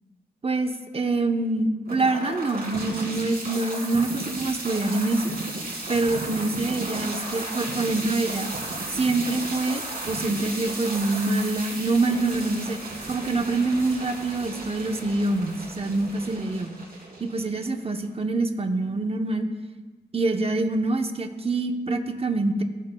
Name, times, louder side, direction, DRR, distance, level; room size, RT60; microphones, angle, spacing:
voice 1, 0.4-5.2 5.9-8.5 8.9-12.8 13.1-16.7 17.2-19.5 20.1-22.6, right 2 dB, 35° right, 6 dB, 0.8 m, -25 dB
sound 1, 1.9-17.9, right 2 dB, 55° right, 2.7 m, -34 dB
14.5 x 7.4 x 2.2 m, 1.3 s
wide cardioid pair, 75°, 18 cm